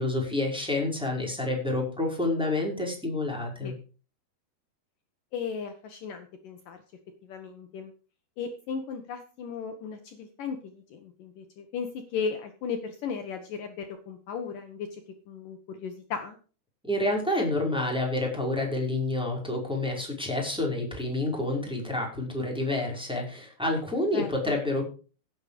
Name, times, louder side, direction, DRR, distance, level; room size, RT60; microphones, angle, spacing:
voice 1, 0.0-3.7 16.8-24.9, left 2 dB, ahead, 0 dB, 5.0 m, -28 dB
voice 2, 5.3-6.8 7.2-7.9 8.4-14.9 15.3-16.4 24.1-24.5, left 6 dB, 65° left, 6 dB, 2.7 m, -36 dB
17.0 x 8.0 x 5.1 m, 0.37 s
omnidirectional pair, 4.4 m